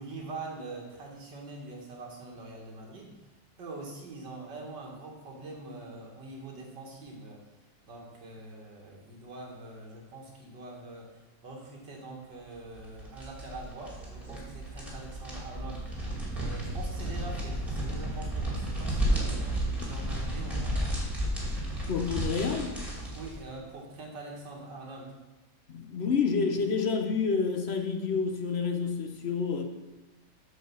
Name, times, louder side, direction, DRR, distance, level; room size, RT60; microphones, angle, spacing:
voice 1, 0.0-3.1 3.6-7.4 7.9-15.9 16.3-20.8 23.1-25.1, right 2 dB, 75° right, 2.4 m, -44 dB
sound 1, 12.7-23.4, right 1 dB, ahead, 2.2 m, -33 dB
voice 2, 21.9-22.7 25.7-29.6, left 5 dB, 60° left, 0.7 m, -28 dB
8.0 x 5.0 x 6.9 m
omnidirectional pair, 1.9 m